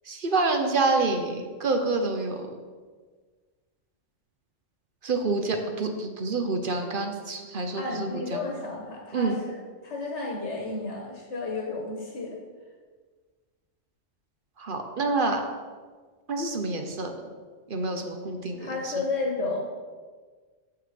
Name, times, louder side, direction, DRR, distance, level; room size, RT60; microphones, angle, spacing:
voice 1, 0.1-2.4 5.0-8.4 9.1-9.4 14.6-15.4 16.3-17.1 17.7-18.9, right 3 dB, 50° right, 5 dB, 0.9 m, -27 dB
voice 2, 7.8-9.6 9.8-12.4 18.6-19.6, left 3 dB, 70° left, 0 dB, 1.5 m, -32 dB
6.9 x 6.8 x 5.1 m, 1.5 s
omnidirectional pair, 1.3 m